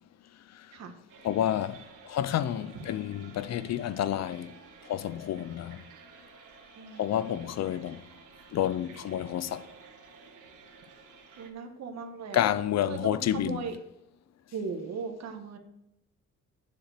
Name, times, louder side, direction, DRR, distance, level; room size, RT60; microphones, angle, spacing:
sound 1, 1.1-11.5, right 5 dB, 90° right, 1.6 m, -53 dB
voice 1, 1.2-4.5 4.9-5.8 7.0-8.0 8.5-9.7 12.3-13.6, left 11 dB, 60° left, 0.6 m, -29 dB
voice 2, 6.7-7.6 11.4-12.5 12.9-13.8 14.5-15.6, right 5 dB, 60° right, 1.5 m, -38 dB
7.6 x 6.9 x 6.6 m
cardioid pair, 90°, 30 cm